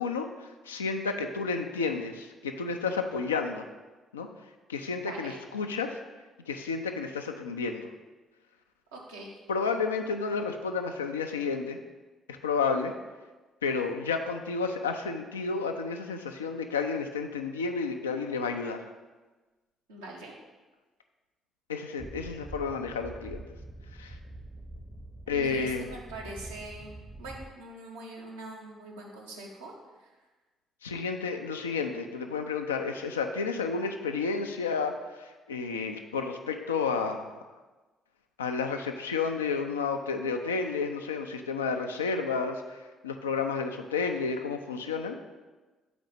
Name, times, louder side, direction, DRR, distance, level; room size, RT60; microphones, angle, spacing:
voice 1, 0.0-3.6 4.1-4.3 4.7-6.0 6.5-7.9 9.5-11.8 12.3-12.9 13.6-18.8 21.7-23.4 24.0-24.2 25.3-25.9 30.8-37.4 38.4-45.2, left 5 dB, 85° left, 5 dB, 0.4 m, -31 dB
voice 2, 5.0-5.4 8.9-9.4 19.9-20.3 25.3-30.1, right 2 dB, 80° right, -2 dB, 1.0 m, -43 dB
sound 1, 22.0-27.5, right 2 dB, 5° right, 0.6 m, -45 dB
5.1 x 4.0 x 5.3 m, 1.2 s
figure-of-eight pair, 45°, 0 cm